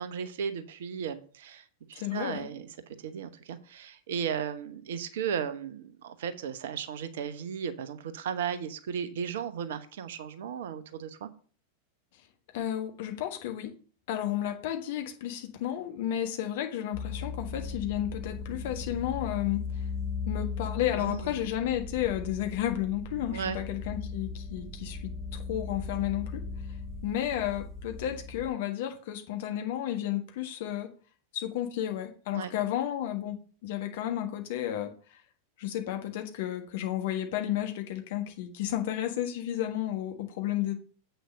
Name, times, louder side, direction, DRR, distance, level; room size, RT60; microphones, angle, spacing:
voice 1, 0.0-2.7 3.0-11.3 21.0-21.3 23.3-23.6 32.3-32.5, right 7 dB, 55° right, 11 dB, 1.0 m, -35 dB
voice 2, 1.9-2.5 12.5-13.7 14.1-19.9 20.2-26.4 27.0-30.9 31.3-34.9 35.6-40.7, left 12 dB, 55° left, 5 dB, 1.5 m, -32 dB
sound 1, 16.9-28.5, left 4 dB, ahead, 2.3 m, -38 dB
7.9 x 6.3 x 5.3 m, 0.41 s
figure-of-eight pair, 90°, 0 cm